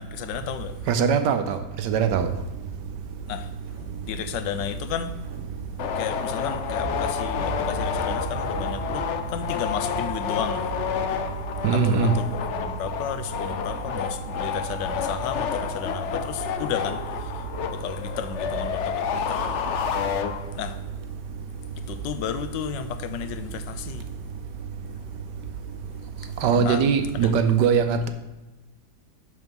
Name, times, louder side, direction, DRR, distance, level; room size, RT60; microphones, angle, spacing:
voice 1, 0.0-0.7 3.3-3.5 4.0-5.1 5.9-10.6 11.7-17.3 17.7-19.4 20.6-20.8 21.9-24.0 26.4-26.8 27.1-27.3, left 9 dB, 85° left, 1.3 m, -33 dB
voice 2, 0.9-2.3 11.6-12.1 26.4-28.1, right 6 dB, 75° right, 1.4 m, -21 dB
sound 1, 1.7-13.0, right 3 dB, 45° right, 1.4 m, -40 dB
sound 2, 5.8-20.8, left 7 dB, 70° left, 0.6 m, -30 dB
6.9 x 6.2 x 5.3 m
omnidirectional pair, 1.9 m